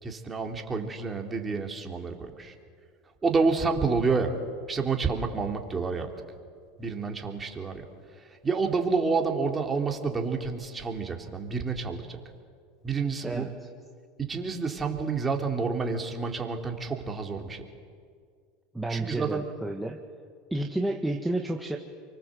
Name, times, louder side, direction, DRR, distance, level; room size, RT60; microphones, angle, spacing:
voice 1, 0.0-2.5 3.2-4.4 4.7-6.1 6.8-7.9 8.4-12.2 12.8-13.5 14.2-17.6 18.9-19.4, right 4 dB, 20° right, 3 dB, 3.7 m, -29 dB
voice 2, 13.2-13.7 18.7-20.0 20.5-21.8, right 1 dB, 5° right, 2 dB, 1.8 m, -31 dB
29.5 x 24.5 x 8.0 m, 2.1 s
hypercardioid pair, 100°, 0 cm